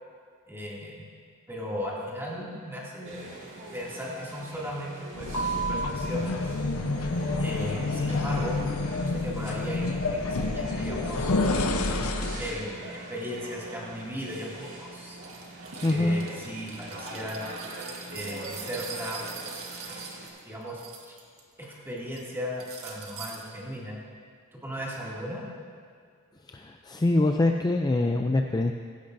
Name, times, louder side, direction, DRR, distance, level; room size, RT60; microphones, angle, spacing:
voice 1, 0.5-1.0 1.5-3.3 3.7-6.5 7.4-8.6 9.0-11.3 12.4-15.2 15.8-17.4 18.1-19.2 19.9-20.0 20.4-20.8 21.1-21.2 21.6-24.0 24.5-25.4, equal, 10° right, -5 dB, 2.4 m, -36 dB
sound 1, 3.0-20.3, right 2 dB, 60° right, 2.2 m, -43 dB
sound 2, 5.1-12.6, left 2 dB, 90° left, 0.8 m, -28 dB
sound 3, 15.2-21.4 21.7-22.2 22.6-23.4, right 6 dB, 90° right, 1.6 m, -42 dB
voice 2, 15.8-16.2 26.5-28.7, left 2 dB, 20° left, 4 dB, 0.4 m, -24 dB
15.5 x 15.5 x 2.6 m, 2.1 s
head